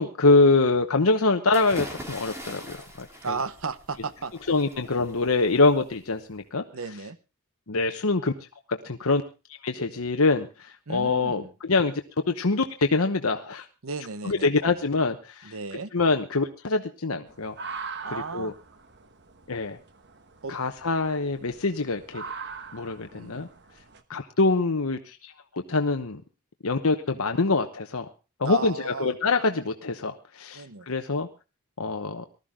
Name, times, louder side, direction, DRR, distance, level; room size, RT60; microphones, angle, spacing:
voice 1, 0.0-3.4 4.5-6.6 7.7-8.3 8.7-9.2 9.6-11.9 12.3-13.7 14.2-15.5 15.9-17.5 18.1-18.5 19.5-19.8 20.5-22.2 22.7-23.5 24.1-26.2 26.6-28.1 28.4-31.3 31.8-32.2, left 3 dB, 80° left, 6 dB, 1.0 m, -24 dB
sound 1, 1.5-6.3, equal, 15° right, 3.3 m, -42 dB
voice 2, 3.2-4.3 6.7-7.2 10.9-11.5 13.8-14.6 15.4-15.9 18.0-18.5 20.4-20.5 23.1-23.4 28.4-29.2 30.5-30.9, right 4 dB, 70° right, 14 dB, 1.0 m, -34 dB
sound 2, 17.3-24.0, right 5 dB, 55° right, 1.3 m, -42 dB
19.5 x 13.0 x 3.7 m, 0.31 s
head